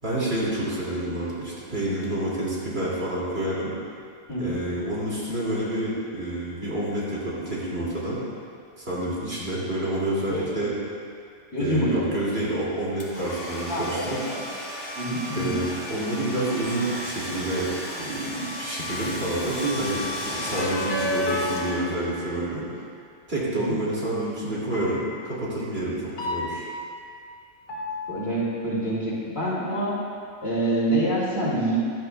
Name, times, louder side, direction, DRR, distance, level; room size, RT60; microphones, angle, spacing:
voice 1, 0.0-3.7 4.4-8.2 8.8-10.7 11.6-14.2 15.3-17.7 18.0-22.6 23.3-26.7, right 1 dB, 55° right, -7 dB, 2.8 m, -28 dB
voice 2, 10.3-10.7 11.5-12.1 13.7-14.2 14.9-15.5 23.5-23.7 28.1-29.9 30.4-31.8, right 1 dB, 55° left, -8 dB, 3.1 m, -26 dB
Domestic sounds home sounds, 13.0-22.2, left 1 dB, 30° left, 1.6 m, -35 dB
sound 1, 20.5-22.7 24.7-25.3 26.2-27.1 27.7-28.5, left 1 dB, 85° left, 2.3 m, -31 dB
15.5 x 11.0 x 2.3 m, 2.3 s
omnidirectional pair, 1.2 m